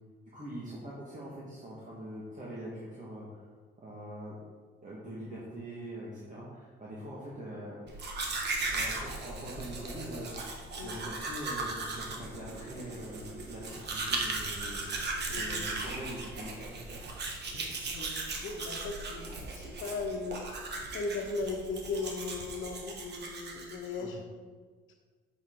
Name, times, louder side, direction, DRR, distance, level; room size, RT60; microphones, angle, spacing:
voice 1, 0.3-3.5 3.8-4.4 4.8-7.8 8.6-14.9 15.4-17.0 17.5-17.8 24.0-24.1, right 1 dB, 40° right, -6 dB, 1.9 m, -43 dB
Domestic sounds home sounds, 7.9-24.0, right 3 dB, 60° right, 1.4 m, -37 dB
voice 2, 15.3-15.7 17.5-20.4 20.9-24.2, left 3 dB, 75° left, 1 dB, 1.1 m, -38 dB
7.6 x 6.7 x 3.9 m, 1.5 s
cardioid pair, 90°, 20 cm